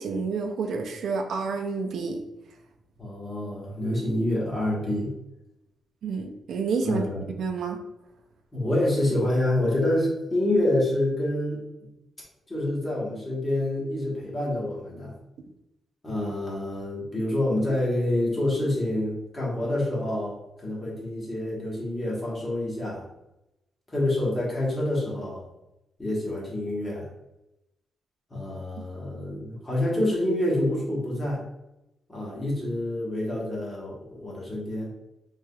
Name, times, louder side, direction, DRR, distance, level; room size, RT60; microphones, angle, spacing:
voice 1, 0.0-2.2 6.0-7.1 7.4-7.8, right 4 dB, 70° right, 4 dB, 0.4 m, -29 dB
voice 2, 3.0-5.1 6.8-7.2 8.5-11.6 12.5-15.1 16.0-23.0 23.9-25.4 26.0-27.1 28.3-31.4 32.1-34.9, left 1 dB, 20° left, -5 dB, 1.2 m, -27 dB
3.4 x 3.1 x 2.3 m, 0.90 s
wide cardioid pair, 150°, 0 cm